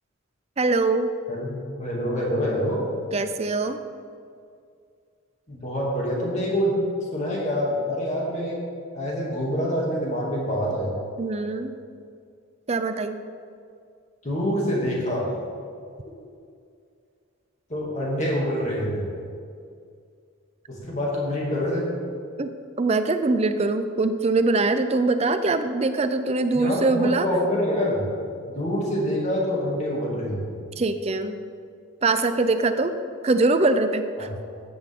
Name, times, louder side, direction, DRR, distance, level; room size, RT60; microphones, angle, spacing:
voice 1, 0.6-1.1 3.1-3.8 11.2-11.7 12.7-13.2 22.4-22.5 22.8-27.3 30.8-31.4 32.0-32.9 33.2-34.3, right 3 dB, 30° right, 9 dB, 0.5 m, -23 dB
voice 2, 1.3-2.8 5.5-6.8 7.1-8.6 8.9-11.0 14.2-15.3 17.7-19.1 20.7-21.9 26.5-28.0 28.5-30.5 34.2-34.3, equal, 35° left, -4 dB, 2.5 m, -26 dB
13.5 x 8.6 x 3.7 m, 2.3 s
head